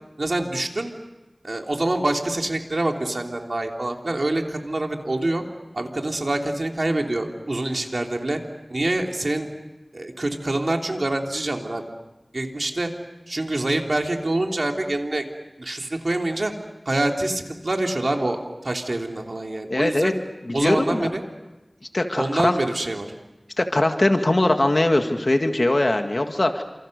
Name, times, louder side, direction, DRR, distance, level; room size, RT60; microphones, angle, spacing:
voice 1, 0.2-0.9 1.4-5.4 5.7-8.4 8.7-9.5 9.9-11.8 12.3-12.9 13.3-15.2 15.6-16.5 16.8-20.1 20.5-21.2 22.1-23.1, right 2 dB, 75° right, 2 dB, 3.2 m, -25 dB
voice 2, 19.7-20.1 20.5-21.1 21.9-22.5 23.6-26.6, left 1 dB, 55° left, 5 dB, 1.8 m, -21 dB
29.5 x 27.0 x 6.7 m, 1.1 s
wide cardioid pair, 50°, 0 cm